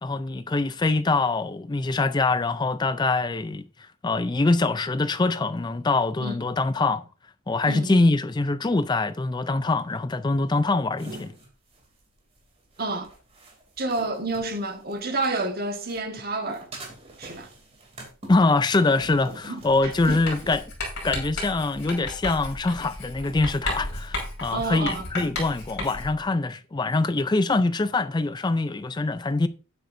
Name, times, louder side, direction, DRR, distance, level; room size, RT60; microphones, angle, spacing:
voice 1, 0.0-3.6 4.0-7.0 7.5-11.3 18.3-20.6 21.0-29.5, left 3 dB, 20° left, 0.4 m, -24 dB
sound 1, 11.0-15.5 15.8-20.5, right 1 dB, 30° right, 2.8 m, -45 dB
voice 2, 12.8-13.1 13.8-16.7 17.2-17.5 19.5-20.2 24.5-25.1, right 2 dB, 45° right, 1.4 m, -29 dB
Writing, 19.8-26.2, left 2 dB, 55° left, 5.2 m, -34 dB
12.0 x 9.3 x 2.6 m
head